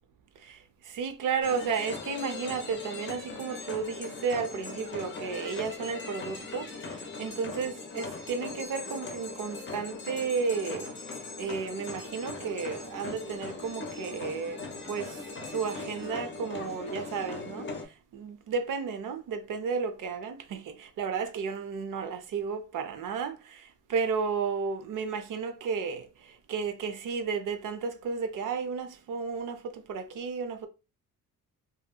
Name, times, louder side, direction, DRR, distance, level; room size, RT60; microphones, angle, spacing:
voice 1, 0.4-10.9 11.4-15.2 15.5-17.7 18.1-23.3 23.9-30.7, right 5 dB, 60° right, 0.6 m, -33 dB
sound 1, 1.4-17.8, left 3 dB, 30° left, 0.7 m, -40 dB
2.7 x 2.6 x 2.3 m
cardioid pair, 115°, 36 cm